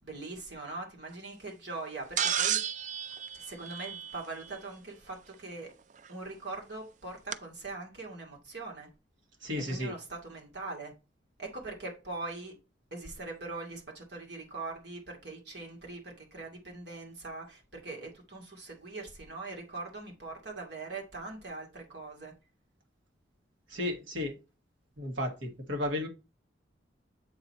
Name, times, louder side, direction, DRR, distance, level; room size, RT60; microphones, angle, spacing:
voice 1, 0.0-2.6 3.3-5.7 6.1-8.9 9.7-10.9 11.4-12.5 12.9-22.3, right 3 dB, 65° right, 2.4 m, -42 dB
sound 1, 2.2-4.5 6.1-6.2 7.3-7.4, right 9 dB, 40° right, 0.4 m, -32 dB
voice 2, 9.4-9.9 23.7-24.3 25.0-26.1, left 1 dB, 85° right, 1.7 m, -33 dB
7.8 x 4.2 x 4.3 m
head